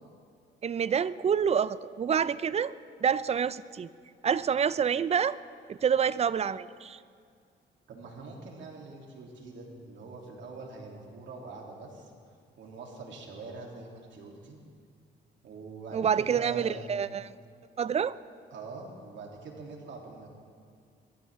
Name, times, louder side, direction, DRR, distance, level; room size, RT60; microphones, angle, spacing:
voice 1, 0.6-2.7 3.0-3.9 4.2-5.4 5.7-7.0 15.9-17.3 17.8-18.2, right 7 dB, 30° right, 17 dB, 0.4 m, -27 dB
voice 2, 7.9-12.1 12.6-14.6 15.4-16.9 18.5-20.3, right 3 dB, 70° right, -1 dB, 3.1 m, -44 dB
23.0 x 14.0 x 3.7 m, 2.2 s
cardioid pair, 90°, 20 cm